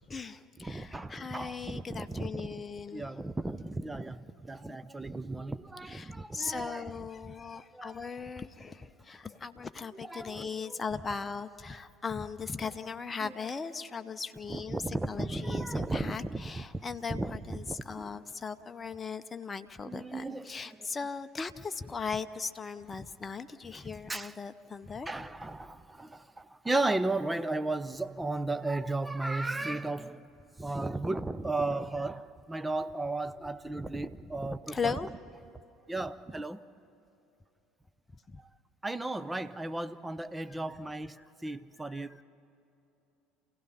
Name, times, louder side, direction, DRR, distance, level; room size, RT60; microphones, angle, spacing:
voice 1, 0.1-3.1 4.7-4.8 5.9-25.1 34.7-35.1 38.3-38.4 40.5-40.6 41.2-41.3 41.9-42.2, left 5 dB, 25° left, 0.8 m, -38 dB
voice 2, 0.6-2.5 2.9-6.9 7.7-8.0 10.0-10.8 13.2-13.3 14.5-16.8 17.1-18.1 19.9-20.5 23.7-23.8 24.1-24.3 25.1-30.3 30.6-34.9 35.9-36.6 38.8-41.2 41.4-42.2, right 2 dB, 15° right, 0.8 m, -35 dB
28.0 x 16.5 x 5.7 m
hypercardioid pair, 65°, 0 cm